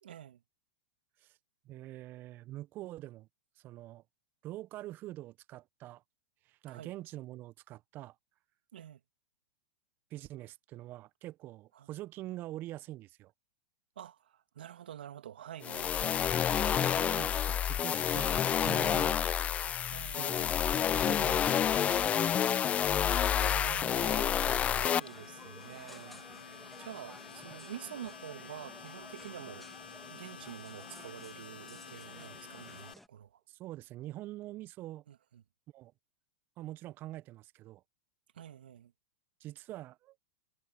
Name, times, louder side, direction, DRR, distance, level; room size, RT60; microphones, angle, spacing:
voice 1, 0.0-0.4 6.7-6.9 8.7-9.0 11.7-11.9 14.0-16.2 19.9-20.6 23.3-29.7 30.1-33.4 35.1-35.4 38.3-38.9, right 10 dB, 75° right, 2.2 m, -48 dB
voice 2, 1.6-3.3 3.6-4.0 4.4-6.0 6.4-8.2 10.1-13.3 16.8-19.2 20.2-20.4 21.0-22.5 33.5-35.0 35.7-35.9 36.6-37.8 39.4-40.2, right 15 dB, 40° right, 1.0 m, -45 dB
sound 1, 15.6-25.0, left 9 dB, 25° left, 0.5 m, -29 dB
sound 2, 24.5-33.1, left 1 dB, 5° left, 2.6 m, -54 dB
Domestic sounds home sounds, 24.8-32.9, left 6 dB, 85° left, 4.5 m, -50 dB
hypercardioid pair, 105°, 5 cm